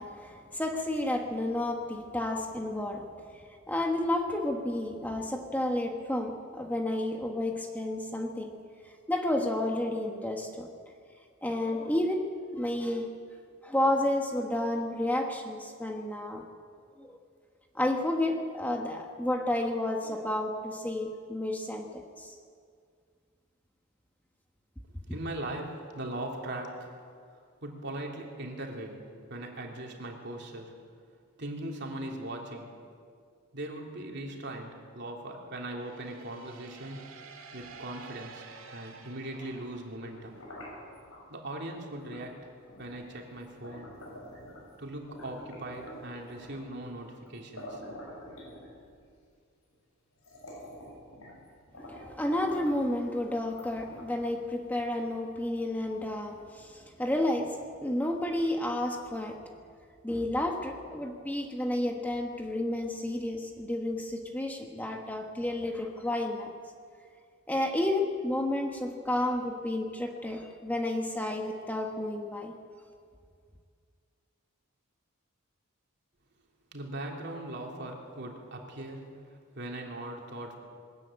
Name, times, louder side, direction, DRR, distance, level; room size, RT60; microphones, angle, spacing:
voice 1, 0.0-3.1 3.7-8.6 9.1-10.7 11.4-13.1 13.6-16.4 17.0-17.2 17.7-22.3 51.8-59.4 60.0-66.5 67.5-72.5, left 1 dB, 10° left, 2 dB, 1.2 m, -31 dB
voice 2, 25.1-26.9 27.3-30.8 31.4-32.8 33.5-37.2 37.5-40.4 41.3-42.5 42.8-44.0 44.8-47.8 76.7-80.5, right 1 dB, 55° right, 0 dB, 3.1 m, -40 dB
sound 1, 35.8-40.6, right 5 dB, 70° right, 2.2 m, -50 dB
bubbles with straw, 39.1-41.2 42.1-42.3 42.7-44.7 45.1-46.7 47.3-47.4 47.6-49.0 49.7-49.8 50.2-51.4 51.7-52.9 53.5-54.3, equal, 85° left, 7.4 m, -47 dB
21.5 x 13.5 x 8.9 m, 2.1 s
head